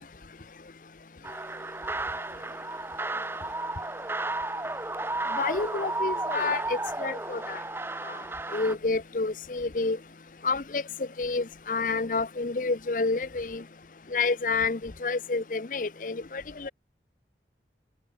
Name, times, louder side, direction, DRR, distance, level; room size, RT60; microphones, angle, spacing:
sound 1, 1.2-8.7, right 2 dB, 15° right, 1.4 m, -33 dB
voice 1, 5.3-7.6 8.5-10.0 10.4-10.8 11.2-13.6 14.1-16.7, left 3 dB, 50° left, 0.7 m, -29 dB
head